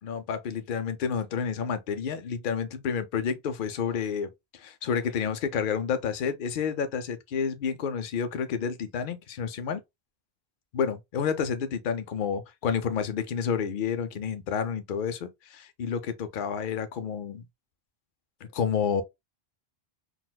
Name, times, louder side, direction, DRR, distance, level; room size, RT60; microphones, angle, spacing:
voice 1, 0.0-9.8 10.7-17.4 18.4-19.0, left 6 dB, 60° left, 0.7 m, -30 dB
3.9 x 2.3 x 2.2 m
omnidirectional pair, 1.0 m